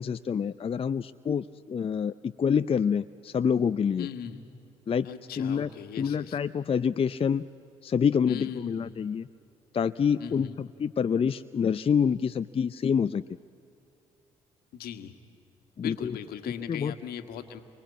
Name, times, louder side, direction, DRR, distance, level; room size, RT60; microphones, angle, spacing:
voice 1, 0.0-4.1 4.9-5.1 5.4-5.7 6.0-7.5 7.8-9.3 9.7-13.2 15.8-16.2 16.7-16.9, left 7 dB, 35° left, 12 dB, 0.5 m, -27 dB
voice 2, 4.0-4.4 5.0-6.4 8.3-8.9 10.2-10.6 14.7-15.2 15.8-17.6, left 9 dB, 65° left, 7 dB, 1.6 m, -39 dB
28.5 x 24.0 x 8.4 m, 2.6 s
hypercardioid pair, 50°, 17 cm